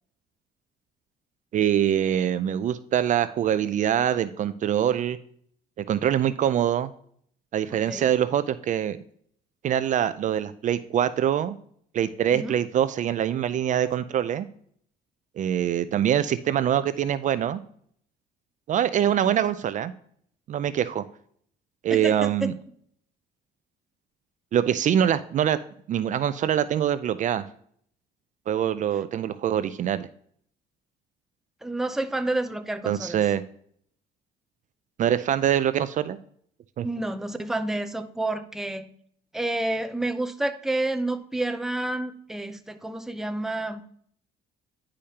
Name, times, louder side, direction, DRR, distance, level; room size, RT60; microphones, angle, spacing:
voice 1, 1.5-5.2 5.8-6.9 7.5-9.0 9.6-11.5 11.9-14.5 15.4-17.6 18.7-19.9 20.5-21.0 21.8-22.5 24.5-25.6 25.9-27.5 28.5-30.1 32.9-33.4 35.0-36.2 36.8-36.9, right 10 dB, 50° right, 13 dB, 0.4 m, -24 dB
voice 2, 7.7-8.1 12.3-12.5 19.0-19.5 21.9-22.5 31.6-33.2 36.8-38.9 39.3-43.8, right 2 dB, ahead, 8 dB, 0.6 m, -29 dB
10.5 x 5.0 x 2.8 m, 0.62 s
cardioid pair, 110°, 17 cm